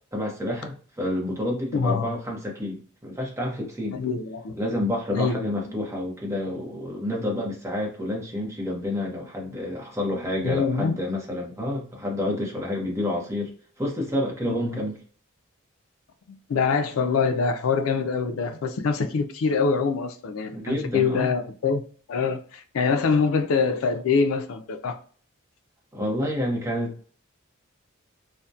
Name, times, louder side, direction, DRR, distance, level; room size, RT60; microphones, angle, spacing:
voice 1, 0.1-4.0 4.5-15.0 20.5-21.3 25.9-27.0, left 1 dB, 15° right, 0.7 m, -29 dB
voice 2, 1.7-2.1 3.9-4.5 5.1-5.4 10.4-10.9 14.4-14.8 16.5-21.8 22.1-25.0, left 5 dB, 70° left, 0.4 m, -24 dB
2.7 x 2.1 x 2.2 m
head